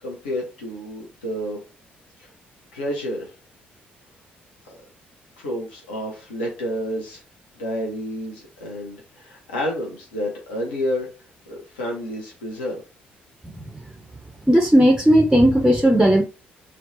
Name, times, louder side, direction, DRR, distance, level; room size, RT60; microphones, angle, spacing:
voice 1, 0.0-1.6 2.2-2.3 2.7-3.3 5.4-7.2 7.6-11.1 11.5-12.8, equal, 75° left, 0.5 m, -29 dB
voice 2, 14.5-16.3, equal, 5° right, 0.4 m, -15 dB
2.5 x 2.0 x 2.6 m
figure-of-eight pair, 45°, 5 cm